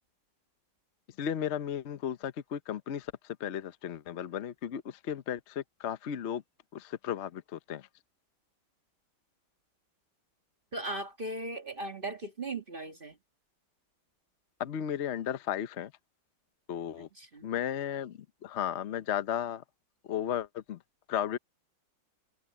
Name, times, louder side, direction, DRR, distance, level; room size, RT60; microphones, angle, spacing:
voice 1, 1.2-6.4 6.7-7.9 14.6-15.9 16.7-17.1 17.4-19.6 20.0-20.8 21.1-21.4, left 9 dB, 65° left, 0.6 m, -34 dB
voice 2, 10.7-13.2 17.0-17.5, right 2 dB, 25° right, 1.7 m, -38 dB
open air
omnidirectional pair, 2.4 m